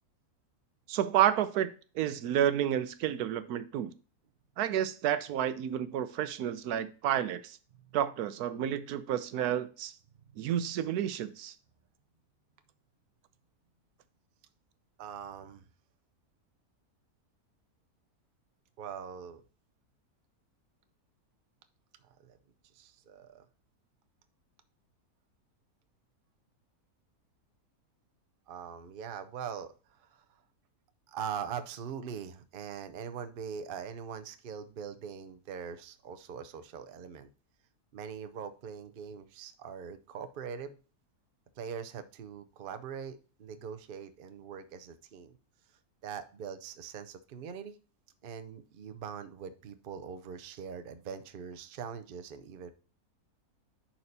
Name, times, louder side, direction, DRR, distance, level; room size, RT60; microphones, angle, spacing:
voice 1, 0.9-1.7 2.0-3.9 4.6-7.5 7.9-9.9 10.4-11.5, right 10 dB, 85° right, 13 dB, 1.1 m, -30 dB
voice 2, 10.1-10.5 15.0-15.7 18.8-19.4 22.0-22.4 22.7-23.5 28.5-30.4 31.1-37.3 37.9-40.8 41.6-45.4 46.0-47.8 48.2-52.7, right 7 dB, 50° right, 10 dB, 0.7 m, -42 dB
10.5 x 4.4 x 2.7 m, 0.37 s
omnidirectional pair, 1.6 m